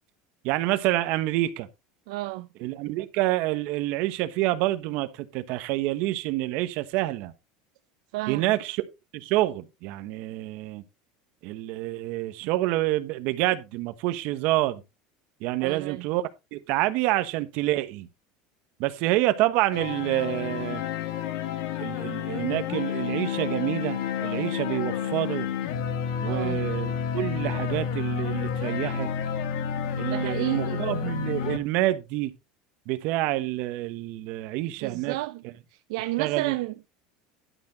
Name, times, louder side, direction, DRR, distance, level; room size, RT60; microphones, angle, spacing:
voice 1, 0.4-1.7 2.6-7.3 8.3-8.8 9.1-10.8 11.4-14.8 15.4-16.2 16.5-18.1 18.8-20.8 21.8-25.5 26.2-29.1 30.0-32.3 32.9-35.2 36.2-36.6, right 16 dB, 60° right, 1.2 m, -27 dB
voice 2, 2.1-2.5 8.1-8.6 12.4-12.5 15.6-16.1 26.3-26.6 30.1-30.8 34.8-35.4 35.7-36.9, right 19 dB, 80° right, 0.6 m, -32 dB
sound 1, 19.7-31.6, left 8 dB, 70° left, 1.9 m, -30 dB
11.5 x 5.8 x 4.2 m
cardioid pair, 150°, 3 cm